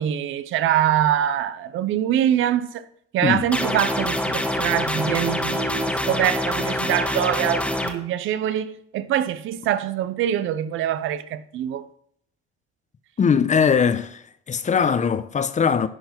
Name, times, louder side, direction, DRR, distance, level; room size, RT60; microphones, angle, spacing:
voice 1, 0.0-2.8 3.1-11.9, right 11 dB, 85° right, 0.7 m, -24 dB
sound 1, 3.5-7.9, left 1 dB, 5° left, 1.4 m, -25 dB
voice 2, 13.2-14.2 14.5-15.9, left 6 dB, 35° left, 0.7 m, -20 dB
11.0 x 4.7 x 5.9 m
cardioid pair, 90°, 20 cm